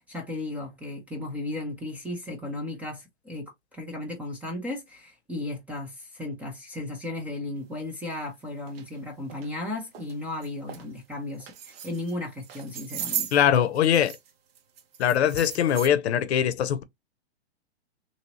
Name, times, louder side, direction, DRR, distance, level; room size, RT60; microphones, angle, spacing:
voice 1, 0.0-13.3, left 2 dB, 5° right, 0.4 m, -35 dB
sound 1, 8.0-8.1 8.7-8.8 9.3-9.5 9.9-10.1 10.4-10.8 11.4-12.1 12.4-14.3 14.5-15.9, right 9 dB, 60° right, 0.8 m, -36 dB
voice 2, 13.3-14.2 15.0-16.8, left 9 dB, 70° left, 0.6 m, -22 dB
3.0 x 2.7 x 2.8 m
hypercardioid pair, 135°, 34 cm